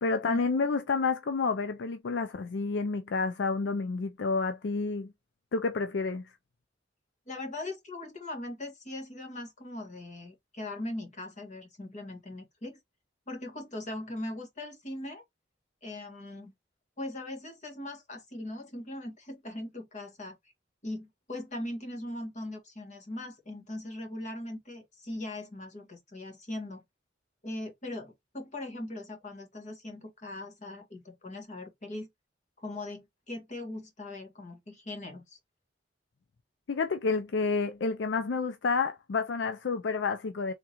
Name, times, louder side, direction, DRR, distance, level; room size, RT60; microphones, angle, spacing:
voice 1, 0.0-5.1 5.5-6.2 36.7-40.5, left 4 dB, 70° left, 0.4 m, -29 dB
voice 2, 7.3-12.8 13.3-15.2 15.8-16.5 17.0-20.4 20.8-26.8 27.4-32.1 32.6-35.4, left 1 dB, 40° left, 1.6 m, -40 dB
3.6 x 3.6 x 2.9 m
head